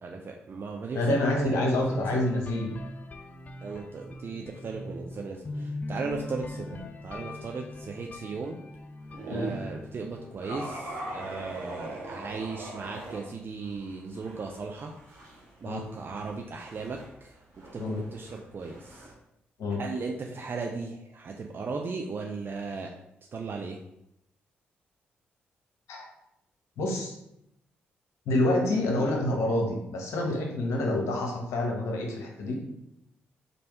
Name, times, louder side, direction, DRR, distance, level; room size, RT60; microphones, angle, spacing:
voice 1, 0.0-1.2 1.6-2.2 3.6-8.6 9.3-14.9 15.6-17.4 17.7-19.1 19.8-22.9 23.3-23.8, right 4 dB, 45° right, 2 dB, 0.4 m, -37 dB
voice 2, 0.9-2.7 9.3-9.5 15.6-15.8 17.8-18.0 19.6-19.8 25.9-26.1 26.8-27.1 28.3-32.6, left 1 dB, 70° left, 0 dB, 1.0 m, -27 dB
sound 1, 1.5-11.3, left 1 dB, 30° left, 0.4 m, -41 dB
sound 2, 9.1-9.7 10.4-13.2 13.6-19.1, right 2 dB, 65° right, 1.4 m, -41 dB
3.4 x 2.6 x 4.3 m, 0.80 s
hypercardioid pair, 45°, 5 cm